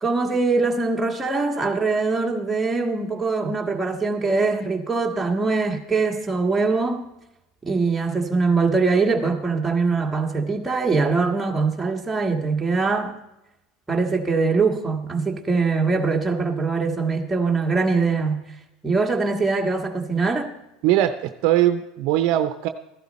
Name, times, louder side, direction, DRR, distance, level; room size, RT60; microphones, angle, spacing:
voice 1, 0.0-7.1 7.6-13.2 13.9-18.4 18.8-20.5, right 4 dB, 10° right, 1 dB, 1.7 m, -22 dB
voice 2, 20.8-22.7, right 13 dB, 65° right, 9 dB, 0.7 m, -20 dB
14.5 x 11.5 x 4.3 m, 0.89 s
supercardioid pair, 110°, 0 cm